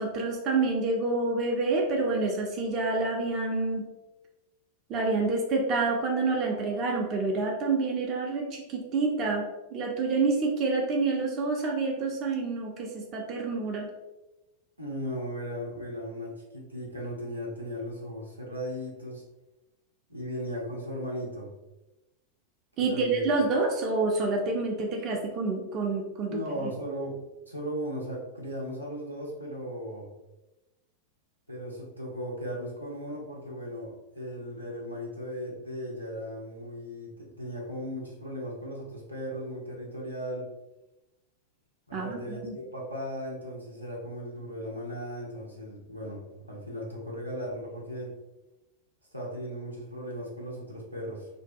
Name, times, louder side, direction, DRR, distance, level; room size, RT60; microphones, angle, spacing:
voice 1, 0.0-3.8 4.9-13.9 22.8-26.3 26.6-26.7 41.9-42.5, right 3 dB, 35° right, 0 dB, 0.5 m, -28 dB
voice 2, 14.8-19.2 20.1-21.5 22.8-23.2 26.3-27.2 27.5-30.1 31.5-40.5 41.9-48.1 49.1-51.3, equal, 85° right, -3 dB, 0.6 m, -37 dB
2.6 x 2.2 x 2.6 m, 1.0 s
figure-of-eight pair, 90°, 0 cm